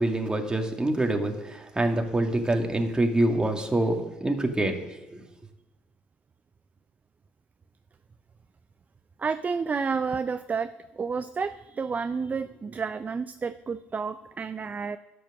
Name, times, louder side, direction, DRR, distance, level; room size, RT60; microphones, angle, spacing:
voice 1, 0.0-4.8 5.1-5.2, right 1 dB, 15° right, 3 dB, 2.3 m, -25 dB
voice 2, 9.2-10.7 10.9-15.0, right 5 dB, 30° right, 12 dB, 0.5 m, -30 dB
10.5 x 7.8 x 7.8 m, 1.1 s
hypercardioid pair, 55°, 5 cm